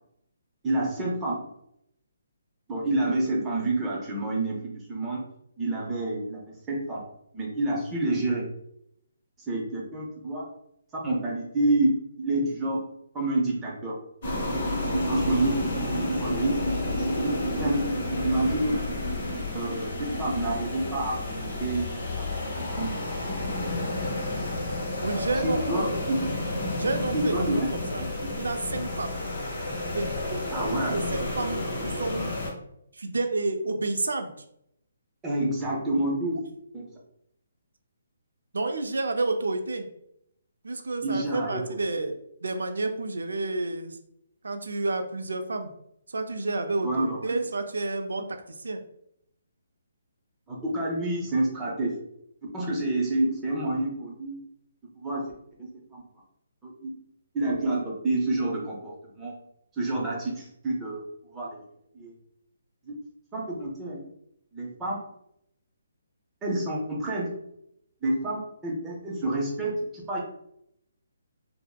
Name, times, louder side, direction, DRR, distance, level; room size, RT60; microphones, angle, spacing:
voice 1, 0.6-1.3 2.7-5.2 5.6-7.0 7.3-8.5 9.5-10.4 11.0-12.8 13.1-13.9 15.1-15.7 16.0-16.5 17.0-17.8 18.2-18.7 19.5-19.9 20.2-22.9 25.4-26.3 27.1-27.7 28.0-28.3 30.5-31.0 35.2-36.4 36.7-36.8 41.0-41.6 46.8-47.3 50.5-52.0 52.5-54.4 55.0-55.3 55.6-56.0 56.6-57.0 57.3-59.3 59.8-61.0 61.3-61.5 61.9-62.1 63.3-64.0 64.5-64.9 66.4-67.3 68.0-69.7 70.1-70.2, right 2 dB, 10° right, -3 dB, 0.6 m, -28 dB
sound 1, 14.2-32.5, left 1 dB, 40° left, 1.0 m, -30 dB
voice 2, 14.9-15.3 25.0-25.9 26.8-27.7 27.9-28.1 28.4-29.1 29.9-30.4 30.9-32.4 32.9-34.3 38.5-39.9 40.6-44.0 44.4-45.7 46.1-48.8, right 2 dB, 90° right, 6 dB, 0.4 m, -30 dB
3.4 x 2.0 x 2.3 m, 0.74 s
hypercardioid pair, 160°, 0 cm